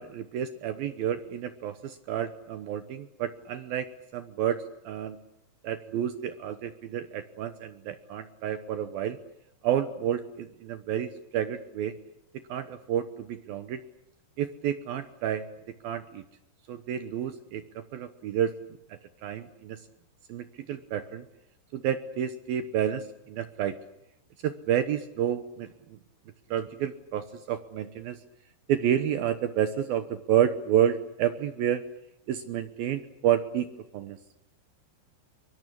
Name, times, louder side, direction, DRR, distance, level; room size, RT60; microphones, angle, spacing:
voice 1, 0.0-3.9 4.1-5.2 5.6-9.2 9.6-11.9 12.5-13.8 14.4-15.4 15.8-16.2 16.7-18.5 19.2-19.8 20.3-21.2 21.7-23.8 24.4-25.7 26.5-28.2 28.7-31.8 32.3-33.7 33.9-34.2, right 10 dB, 75° right, 10 dB, 2.3 m, -30 dB
23.5 x 23.5 x 8.5 m, 0.84 s
omnidirectional pair, 5.6 m